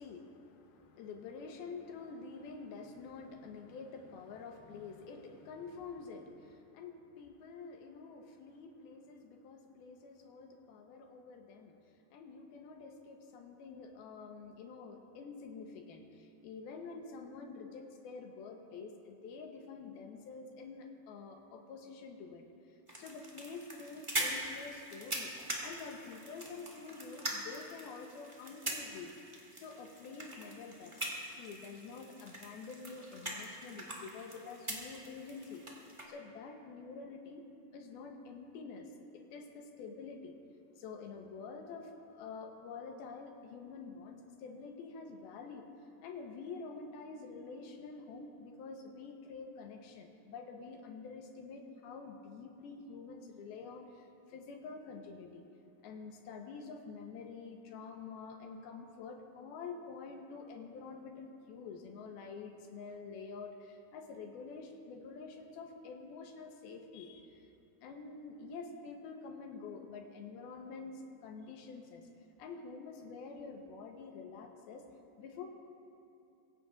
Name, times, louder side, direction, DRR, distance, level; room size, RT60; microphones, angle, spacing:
voice 1, 0.0-11.8 12.1-25.3 25.6-29.1 29.5-31.0 31.3-37.4 37.7-40.3 40.8-45.7 46.0-55.4 55.8-67.5 67.8-72.1 72.4-74.8 75.2-75.5, left 4 dB, 85° left, 3 dB, 2.9 m, -48 dB
sound 1, 22.9-36.0, right 1 dB, 30° right, 0.5 m, -43 dB
24.5 x 16.5 x 2.6 m, 2.7 s
omnidirectional pair, 4.3 m